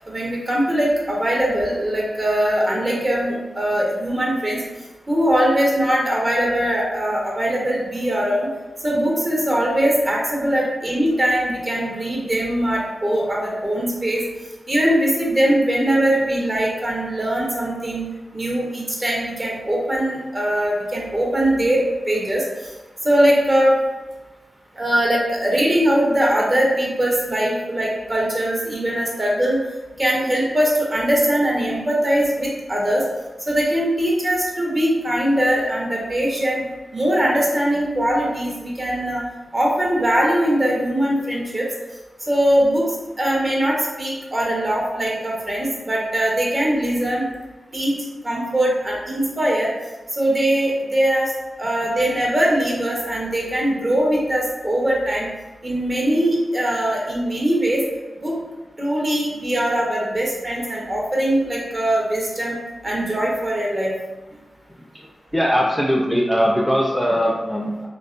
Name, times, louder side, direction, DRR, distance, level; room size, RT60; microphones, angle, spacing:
voice 1, 0.1-4.6 5.1-8.5 8.8-14.2 14.7-18.0 18.3-22.4 23.0-23.8 24.8-29.6 30.0-33.0 33.5-36.7 36.9-39.2 39.5-41.7 42.3-42.9 43.2-47.3 47.7-48.0 48.2-49.7 50.1-51.3 51.6-55.3 55.6-57.8 58.2-58.4 58.8-62.6 62.8-63.9, right 1 dB, 35° right, -3 dB, 0.8 m, -21 dB
voice 2, 65.3-67.9, equal, 5° right, -3 dB, 0.4 m, -20 dB
2.5 x 2.0 x 2.4 m, 1.1 s
cardioid pair, 45°, 0 cm